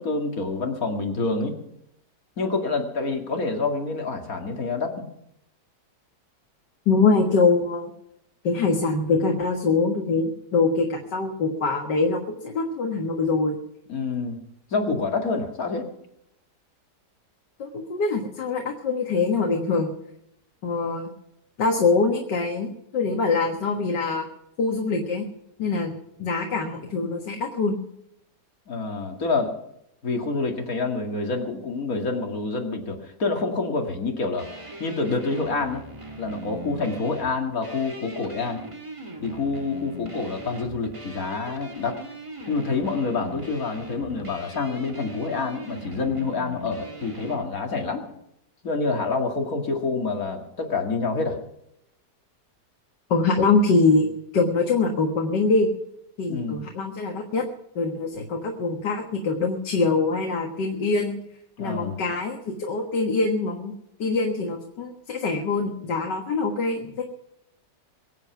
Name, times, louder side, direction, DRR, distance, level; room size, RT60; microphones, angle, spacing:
voice 1, 0.0-1.6 2.4-5.0 13.9-14.4 14.7-15.9 28.7-29.5 30.0-34.5 34.8-35.9 36.2-38.6 39.2-42.0 42.5-48.1 48.6-51.4 56.3-56.6 61.6-62.0, left 3 dB, 50° left, 3 dB, 2.6 m, -27 dB
voice 2, 6.9-7.9 8.4-13.6 17.6-19.9 20.6-21.1 21.6-24.3 24.6-25.2 25.6-25.9 26.2-27.8 53.1-55.7 56.2-57.4 57.8-61.2 61.6-63.7 64.0-67.0, left 3 dB, 75° left, 2 dB, 2.2 m, -24 dB
sound 1, 34.4-47.4, right 1 dB, 20° right, 1.8 m, -40 dB
23.5 x 8.4 x 5.9 m, 0.79 s
omnidirectional pair, 1.9 m